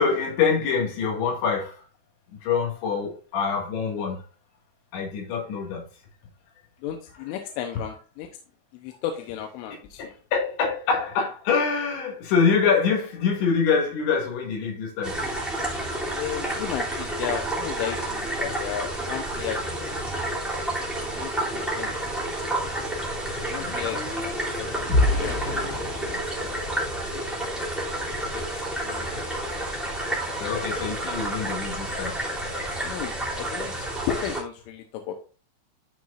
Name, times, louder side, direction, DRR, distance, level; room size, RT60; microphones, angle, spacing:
voice 1, 0.0-1.8 2.4-4.2 4.9-5.8 10.3-15.2 23.3-24.6 30.0-30.1 30.4-32.2, left 5 dB, 70° left, 4.2 m, -25 dB
voice 2, 6.8-8.3 8.7-10.2 16.1-20.2 20.8-22.1 22.4-22.7 23.4-26.8 27.1-27.2 28.3-28.4 28.7-29.3 32.8-35.1, left 10 dB, 85° left, 3.3 m, -35 dB
sound 1, 15.0-34.4, right 1 dB, ahead, 1.3 m, -30 dB
sound 2, 22.4-27.8 28.3-28.5 28.9-29.1, left 2 dB, 25° left, 2.8 m, -30 dB
12.5 x 6.2 x 2.6 m
omnidirectional pair, 5.6 m